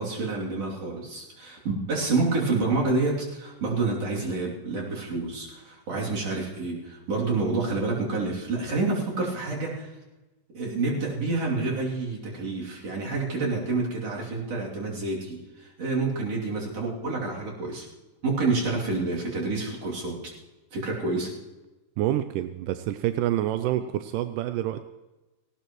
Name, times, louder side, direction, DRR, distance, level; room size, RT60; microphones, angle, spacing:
voice 1, 0.0-9.9 10.5-17.9 18.2-20.3 20.7-21.3, right 3 dB, 50° right, -3 dB, 3.9 m, -28 dB
voice 2, 22.0-24.8, right 13 dB, 85° right, 10 dB, 2.2 m, -27 dB
18.5 x 17.5 x 3.1 m, 1.1 s
omnidirectional pair, 3.6 m